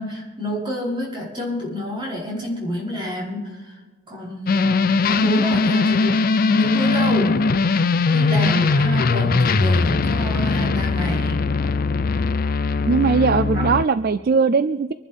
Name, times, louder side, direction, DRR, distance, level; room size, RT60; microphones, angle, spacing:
voice 1, 0.0-3.8 4.1-7.5 8.1-11.4 13.5-13.7, equal, 25° right, -6 dB, 5.4 m, -28 dB
sound 1, 4.5-13.8, left 4 dB, 40° left, 0.4 m, -20 dB
voice 2, 12.9-14.9, right 5 dB, 45° right, 14 dB, 0.3 m, -19 dB
25.0 x 11.5 x 3.7 m, 1.4 s
head